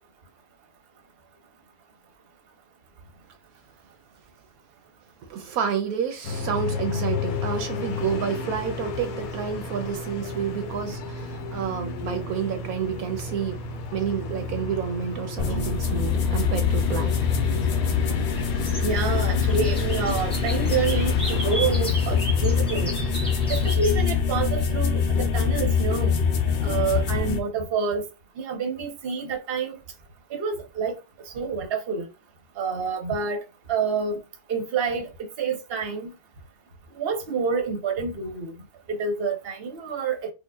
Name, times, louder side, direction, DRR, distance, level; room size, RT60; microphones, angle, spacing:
voice 1, 5.3-13.6 13.9-17.2, right 7 dB, 80° right, 1.1 m, -29 dB
sound 1, 6.2-23.8, left 3 dB, 75° left, 1.0 m, -33 dB
sound 2, 15.4-27.4, left 6 dB, 60° left, 0.6 m, -24 dB
sound 3, 16.5-24.6, right 1 dB, 5° left, 0.8 m, -37 dB
voice 2, 18.8-22.9 23.5-26.1 26.6-28.0 28.4-29.8 30.3-30.9 31.3-32.1 32.6-33.4 33.7-34.2 34.5-36.1 37.0-38.5 38.9-40.3, right 5 dB, 45° right, 0.9 m, -28 dB
4.6 x 2.5 x 2.3 m
omnidirectional pair, 1.6 m